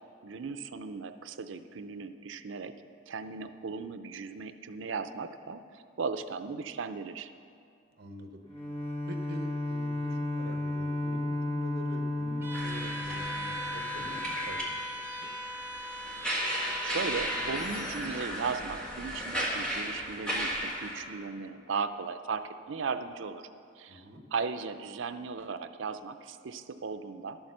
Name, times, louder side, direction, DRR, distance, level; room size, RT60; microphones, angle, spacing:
voice 1, 0.2-2.7 3.1-7.3 16.4-23.5 23.8-24.0 24.3-27.4, right 5 dB, 75° right, 10 dB, 0.5 m, -37 dB
voice 2, 8.0-8.4 9.1-15.3 23.9-24.2, equal, 50° right, 4 dB, 1.1 m, -46 dB
Bowed string instrument, 8.4-14.1, left 2 dB, 30° left, 1.7 m, -33 dB
Bowed string instrument 2, 12.4-17.7, equal, 15° right, 0.8 m, -39 dB
sound 1, 12.5-21.0, equal, 5° left, 1.6 m, -35 dB
11.5 x 7.1 x 6.6 m, 2.5 s
head